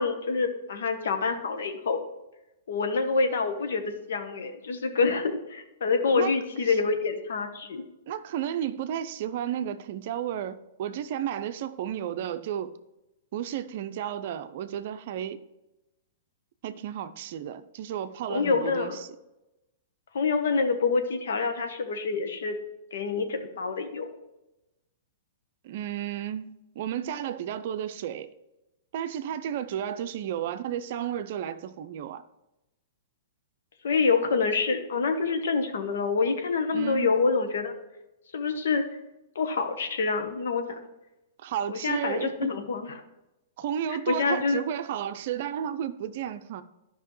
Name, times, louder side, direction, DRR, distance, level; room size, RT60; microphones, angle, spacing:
voice 1, 0.0-2.0 2.7-7.8 18.3-19.0 20.1-22.6 22.9-24.1 33.8-37.7 38.3-38.9 39.3-40.8 41.7-42.9 44.1-44.6, left 4 dB, 70° left, 1.0 m, -26 dB
voice 2, 8.1-12.7 13.3-15.4 16.6-19.2 25.6-28.3 28.9-32.2 36.7-37.1 41.4-42.6 43.6-46.6, right 10 dB, 55° right, 0.5 m, -33 dB
12.0 x 5.4 x 3.1 m
hypercardioid pair, 115°, 0 cm